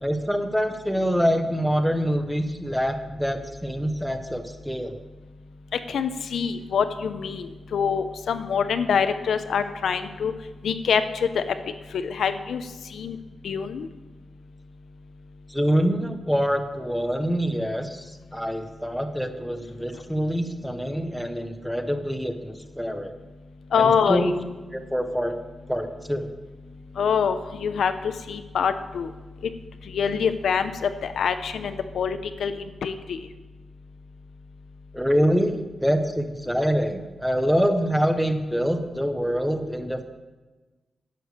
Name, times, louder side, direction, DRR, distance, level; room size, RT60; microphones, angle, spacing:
voice 1, 0.0-5.0 15.5-23.1 23.7-24.3 24.7-25.3 25.7-26.3 34.9-40.0, equal, ahead, 6 dB, 0.7 m, -25 dB
voice 2, 5.9-10.3 10.6-11.4 11.9-12.6 12.9-13.2 13.4-13.9 23.7-24.3 27.0-29.1 29.9-33.2, left 6 dB, 85° left, 10 dB, 0.7 m, -25 dB
11.0 x 6.8 x 6.6 m, 1.2 s
wide cardioid pair, 175°, 0 cm